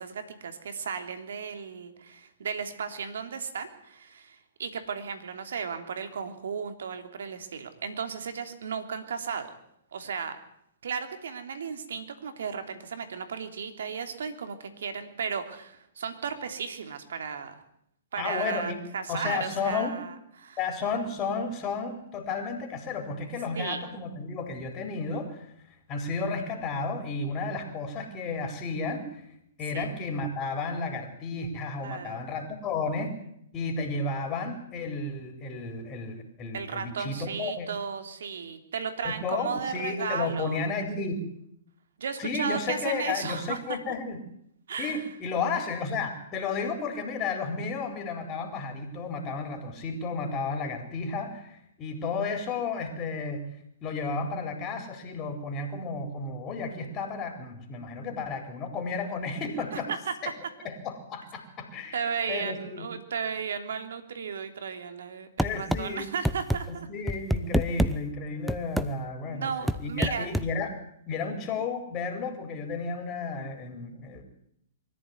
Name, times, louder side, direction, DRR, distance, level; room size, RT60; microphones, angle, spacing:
voice 1, 0.0-9.5 9.9-10.4 10.8-17.6 18.1-20.1 20.4-20.6 23.5-23.8 29.7-29.9 31.8-32.3 36.5-40.6 42.0-43.8 44.7-45.0 59.7-60.0 61.9-66.9 69.2-70.3, right 6 dB, 75° right, 7 dB, 3.2 m, -35 dB
voice 2, 18.2-18.8 19.1-20.0 20.6-25.5 25.9-29.2 29.6-33.1 33.5-37.7 39.0-41.2 42.2-44.2 44.8-53.4 53.8-59.9 60.2-60.3 60.6-62.9 65.4-66.0 66.7-69.5 69.8-70.8 71.1-74.2, left 4 dB, 25° left, 4 dB, 4.4 m, -32 dB
sound 1, 65.4-65.8 66.3-66.6 67.1-67.9 68.5-68.9 69.7-70.5, equal, ahead, 0.9 m, -25 dB
23.5 x 14.5 x 9.8 m, 0.74 s
hypercardioid pair, 125°, 0 cm